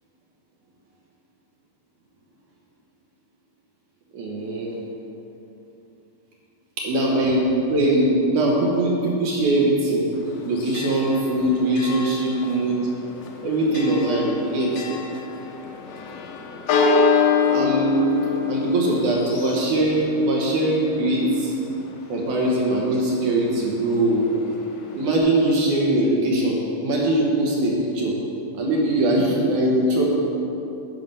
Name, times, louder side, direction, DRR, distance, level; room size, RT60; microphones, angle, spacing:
voice 1, 4.1-4.8 6.8-10.1 10.5-12.8 13.4-14.7 17.5-18.0 18.5-21.5 22.1-24.3 24.9-28.2 28.6-30.0, right 1 dB, 65° right, -3 dB, 2.4 m, -21 dB
Church bell, 10.1-25.2, left 5 dB, 90° left, 1.4 m, -27 dB
11.0 x 5.9 x 5.4 m, 2.8 s
omnidirectional pair, 4.1 m